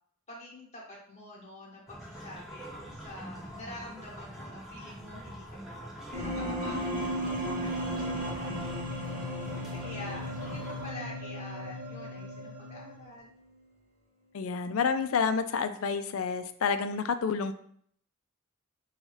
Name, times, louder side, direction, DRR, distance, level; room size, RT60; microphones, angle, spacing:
voice 1, 0.3-9.1 9.7-13.3, left 1 dB, 30° left, -5 dB, 1.1 m, -47 dB
sound 1, 1.9-10.9, equal, ahead, 0.5 m, -45 dB
sound 2, 6.1-13.2, equal, 40° right, 1.0 m, -35 dB
voice 2, 14.3-17.5, left 5 dB, 75° left, 10 dB, 0.4 m, -29 dB
5.4 x 2.3 x 3.1 m, 0.63 s
head